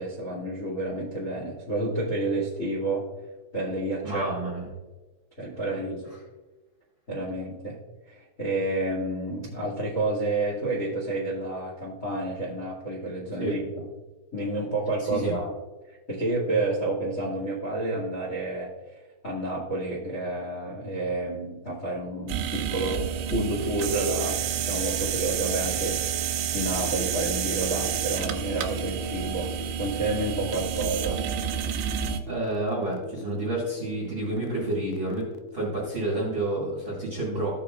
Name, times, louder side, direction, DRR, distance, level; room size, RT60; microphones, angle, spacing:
voice 1, 0.0-3.0 3.5-4.3 5.4-6.0 7.1-7.8 8.1-13.9 14.3-15.5 15.9-18.7 19.2-29.5 29.8-31.2, right 2 dB, 35° left, -3 dB, 1.4 m, -30 dB
voice 2, 4.0-4.7 13.4-13.5 15.0-15.4 32.3-35.3 35.5-37.6, right 2 dB, 40° right, -5 dB, 1.9 m, -29 dB
sound 1, 22.3-32.2, right 9 dB, 85° right, 3.1 m, -29 dB
sound 2, 26.6-36.0, left 13 dB, 85° left, 2.5 m, -43 dB
16.0 x 6.7 x 2.5 m, 1.2 s
omnidirectional pair, 5.5 m